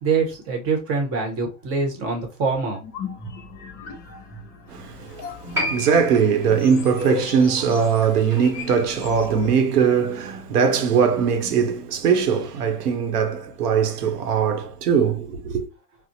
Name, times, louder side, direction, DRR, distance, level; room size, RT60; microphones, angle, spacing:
voice 1, 0.0-2.8, right 4 dB, 30° right, 1.0 m, -24 dB
sound 1, 2.8-9.5, left 6 dB, 35° left, 0.8 m, -37 dB
voice 2, 4.7-15.7, right 6 dB, 80° right, 0.9 m, -21 dB
Piano, 5.5-12.5 12.8-12.9, left 1 dB, 5° right, 0.4 m, -35 dB
4.2 x 2.0 x 2.6 m
hypercardioid pair, 135°, 46 cm